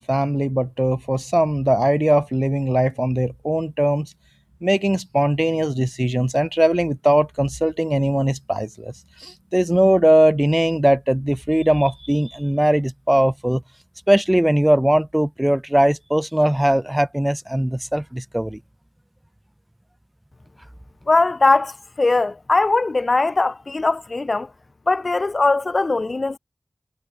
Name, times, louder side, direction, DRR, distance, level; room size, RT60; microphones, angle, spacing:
voice 1, 0.0-4.1 4.6-8.9 9.2-13.6 14.1-18.6, right 1 dB, 10° right, 1.7 m, -19 dB
voice 2, 21.1-24.5 24.9-26.4, left 3 dB, 50° left, 3.1 m, -20 dB
wide cardioid pair, 60°, 0 cm